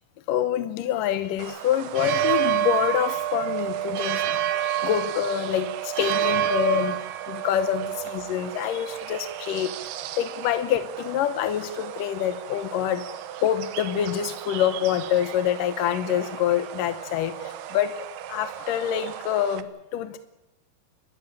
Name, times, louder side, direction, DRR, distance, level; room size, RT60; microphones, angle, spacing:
voice 1, 0.3-9.7 10.2-13.1 13.4-19.7 19.9-20.2, left 10 dB, 70° left, 10 dB, 2.2 m, -26 dB
sound 1, 1.4-19.6, right 12 dB, 90° right, 3.0 m, -31 dB
29.5 x 14.0 x 8.7 m, 0.97 s
omnidirectional pair, 4.6 m